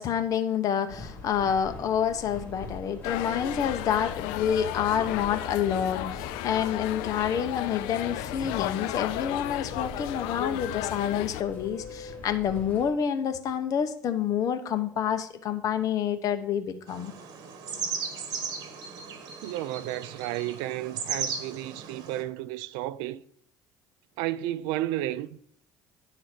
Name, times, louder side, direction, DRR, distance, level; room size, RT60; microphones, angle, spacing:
voice 1, 0.0-17.1, left 8 dB, 50° left, 1.0 m, -28 dB
sound 1, 0.9-12.9, left 2 dB, 20° left, 2.7 m, -44 dB
sound 2, 3.0-11.4, left 15 dB, 90° left, 0.4 m, -34 dB
sound 3, 16.9-22.2, right 6 dB, 60° right, 1.6 m, -36 dB
voice 2, 19.4-23.2 24.2-25.4, right 14 dB, 90° right, 0.5 m, -32 dB
10.0 x 3.9 x 6.6 m
cardioid pair, 115°, 8 cm